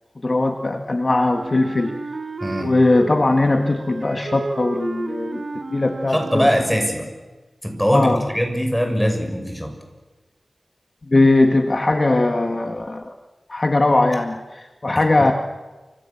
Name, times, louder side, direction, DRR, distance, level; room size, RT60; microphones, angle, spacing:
voice 1, 0.2-2.0 2.6-5.4 5.7-6.5 7.9-8.2 11.0-13.1 13.5-15.3, left 2 dB, 40° left, 5 dB, 1.8 m, -19 dB
Wind instrument woodwind instrument, 1.3-7.1, right 3 dB, 65° right, 2.4 m, -33 dB
voice 2, 2.4-2.7 6.1-7.0 7.6-9.7 14.9-15.3, equal, ahead, 4 dB, 6.7 m, -22 dB
29.0 x 26.5 x 7.3 m, 1.2 s
wide cardioid pair, 85°, 0 cm